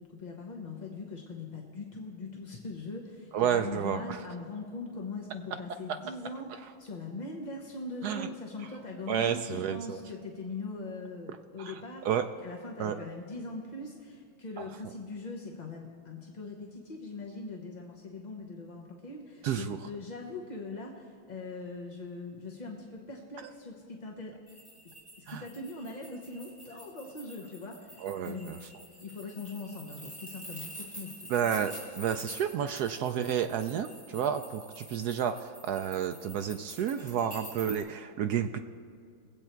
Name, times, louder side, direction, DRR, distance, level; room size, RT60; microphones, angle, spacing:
voice 1, 0.0-12.0 12.4-24.4 25.2-28.7 29.0-31.3, left 3 dB, 35° left, -1 dB, 0.7 m, -41 dB
voice 2, 3.3-4.2 8.0-8.3 9.1-10.0 11.6-12.2 12.8-13.0 14.6-14.7 19.4-19.8 25.3-25.4 28.0-28.6 31.3-38.6, right 8 dB, 80° right, 8 dB, 0.8 m, -31 dB
sound 1, 24.5-37.8, equal, 5° left, 3.6 m, -47 dB
21.5 x 8.1 x 4.5 m, 2.5 s
omnidirectional pair, 2.2 m